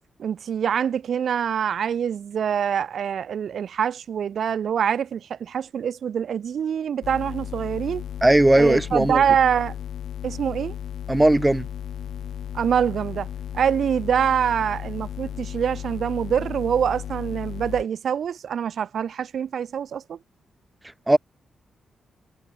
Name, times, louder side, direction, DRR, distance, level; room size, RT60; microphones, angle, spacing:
voice 1, 0.2-8.0 8.6-9.7 10.2-10.7 12.5-13.3 13.5-20.2, right 8 dB, 55° right, 2.5 m, -25 dB
sound 1, 7.0-17.8, left 9 dB, 70° left, 2.8 m, -35 dB
voice 2, 8.2-9.2 11.1-11.7 21.1-21.2, right 1 dB, 10° right, 0.6 m, -17 dB
wide cardioid pair, 165°, 0 cm